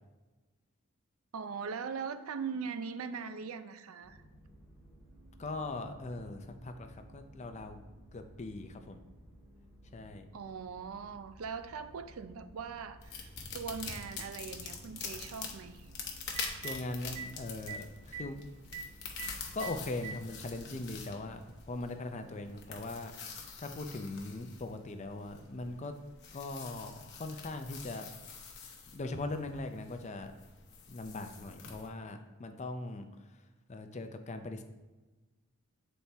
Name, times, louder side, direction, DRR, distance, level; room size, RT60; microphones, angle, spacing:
voice 1, 1.3-4.2 10.3-13.3 13.5-15.9, right 6 dB, 80° right, 11 dB, 0.4 m, -40 dB
sound 1, 4.0-21.4, equal, 15° right, 1.1 m, -56 dB
voice 2, 5.4-7.8 8.1-9.0 9.9-10.2 16.6-18.4 18.6-18.8 19.5-25.9 26.3-28.1 28.9-30.3 30.9-33.1 33.7-34.6, left 2 dB, 35° left, 7 dB, 0.5 m, -40 dB
sound 2, 13.0-31.9, left 5 dB, 55° left, 0.9 m, -46 dB
Telephone, 13.6-13.7 15.8-15.9 16.2-16.7 17.2-17.3 17.7-17.8 18.1-18.2 18.7-18.8 19.2-19.3 19.6-20.2 21.2-21.3 22.7-22.8, right 7 dB, 30° right, 0.7 m, -41 dB
8.2 x 4.2 x 3.4 m, 1.2 s
head